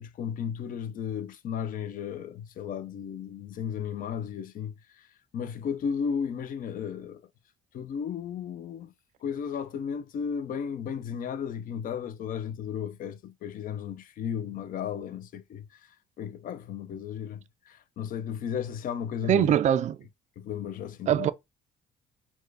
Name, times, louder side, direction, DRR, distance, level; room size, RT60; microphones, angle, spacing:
voice 1, 0.0-5.1 5.3-7.2 7.7-8.9 9.2-15.9 16.2-19.6 20.4-21.3, left 7 dB, 55° left, 0.6 m, -34 dB
voice 2, 19.3-20.0 21.1-21.3, right 10 dB, 45° right, 0.4 m, -22 dB
4.5 x 2.3 x 4.7 m
cardioid pair, 110°, 17 cm